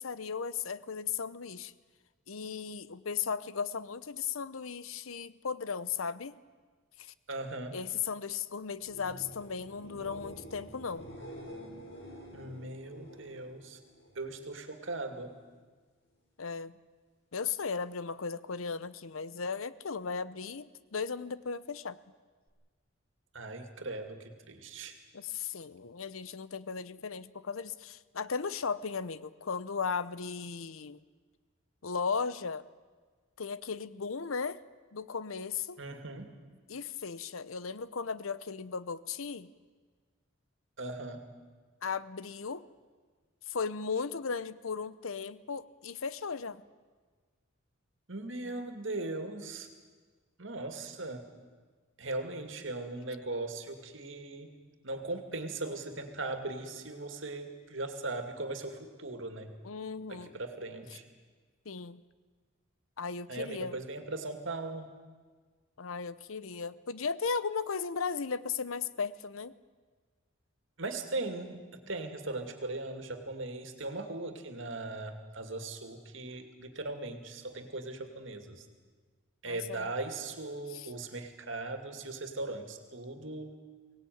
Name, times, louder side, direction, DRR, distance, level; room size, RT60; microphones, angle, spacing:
voice 1, 0.0-1.7 2.3-6.3 7.0-7.1 7.7-11.1 16.4-16.8 17.3-22.0 25.1-31.0 31.8-32.6 33.4-34.6 34.9-35.8 36.7-39.5 41.8-42.7 43.5-46.6 59.6-60.4 61.6-62.0 63.0-63.8 65.8-69.5 79.5-79.9 80.7-80.9, left 5 dB, 85° left, 16 dB, 0.8 m, -36 dB
voice 2, 7.3-7.8 12.3-13.8 14.1-15.3 23.3-25.0 35.8-36.3 40.8-41.3 48.1-49.7 50.4-51.3 52.0-54.5 54.8-59.5 60.1-61.0 63.3-64.9 70.8-78.7 79.4-83.6, right 2 dB, 65° right, 6 dB, 2.4 m, -39 dB
sound 1, 8.7-14.5 14.8-15.4 22.5-22.6, equal, 60° left, 5.9 m, -49 dB
23.0 x 18.0 x 9.4 m, 1.5 s
head